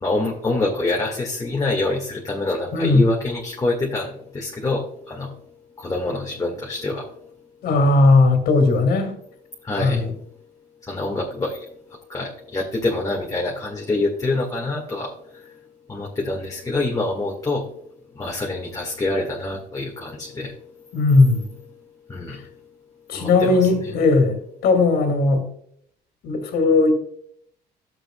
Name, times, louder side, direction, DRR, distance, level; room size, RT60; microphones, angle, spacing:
voice 1, 0.0-5.3 5.8-7.1 9.6-10.0 10.9-11.6 12.1-15.1 15.9-17.7 18.2-20.5 22.1-22.4 23.1-23.6, left 2 dB, 20° left, -1 dB, 1.9 m, -26 dB
voice 2, 2.7-3.0 7.6-9.1 9.8-10.1 20.9-21.5 23.1-25.5 26.2-26.9, left 3 dB, 70° left, 6 dB, 2.3 m, -17 dB
13.0 x 7.8 x 2.3 m, 0.67 s
cardioid pair, 110°, 17 cm